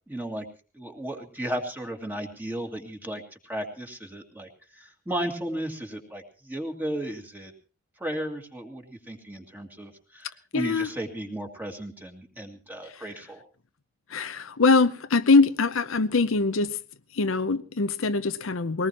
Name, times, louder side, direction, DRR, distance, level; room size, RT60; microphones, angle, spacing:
voice 1, 0.1-0.5 0.7-4.5 4.8-7.5 8.0-13.4, right 1 dB, 10° right, 2.3 m, -34 dB
voice 2, 10.5-10.9 12.9-13.0 14.1-16.8 17.1-18.9, left 3 dB, 75° left, 0.7 m, -23 dB
21.0 x 18.5 x 3.0 m
head